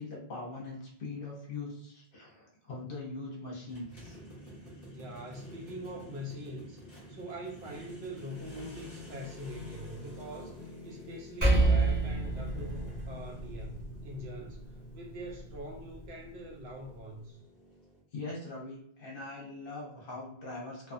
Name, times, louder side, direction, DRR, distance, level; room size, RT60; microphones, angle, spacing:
voice 1, 0.0-4.2 18.1-20.9, left 2 dB, 60° left, -3 dB, 0.9 m, -41 dB
sound 1, 3.7-18.0, left 1 dB, 35° left, 1.0 m, -49 dB
voice 2, 4.9-6.8 7.1-17.4, equal, 80° right, -1 dB, 0.8 m, -43 dB
Percussion, 11.4-16.2, right 2 dB, 20° right, 1.0 m, -30 dB
2.4 x 2.3 x 2.5 m, 0.67 s
omnidirectional pair, 1.1 m